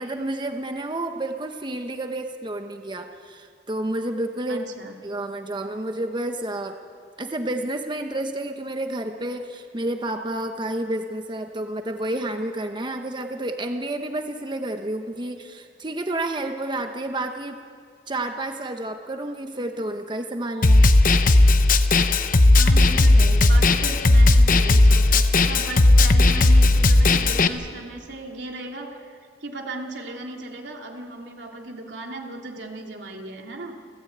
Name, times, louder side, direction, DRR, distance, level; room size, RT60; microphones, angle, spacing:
voice 1, 0.0-4.6 5.0-6.8 7.2-17.6 18.1-20.9, right 1 dB, 25° right, 5 dB, 1.0 m, -30 dB
voice 2, 4.5-5.0 22.6-33.7, right 2 dB, 85° right, 1 dB, 2.8 m, -36 dB
Snare drum, 20.6-27.5, left 2 dB, 50° left, 0.9 m, -16 dB
29.5 x 13.5 x 8.7 m, 2.2 s
head